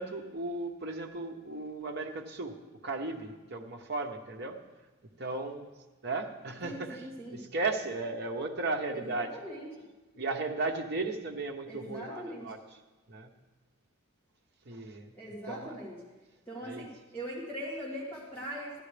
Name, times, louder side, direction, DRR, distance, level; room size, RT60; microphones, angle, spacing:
voice 1, 0.0-2.6 2.8-4.6 5.2-5.7 6.0-7.0 7.3-9.3 10.2-12.6 13.1-13.3 14.7-15.1 15.5-15.7 16.6-16.9, right 3 dB, 50° right, 3 dB, 0.9 m, -35 dB
voice 2, 6.6-7.4 8.9-9.9 11.7-12.5 15.1-16.0 16.5-18.8, equal, 10° left, -7 dB, 2.0 m, -41 dB
14.0 x 11.0 x 3.4 m, 1.2 s
head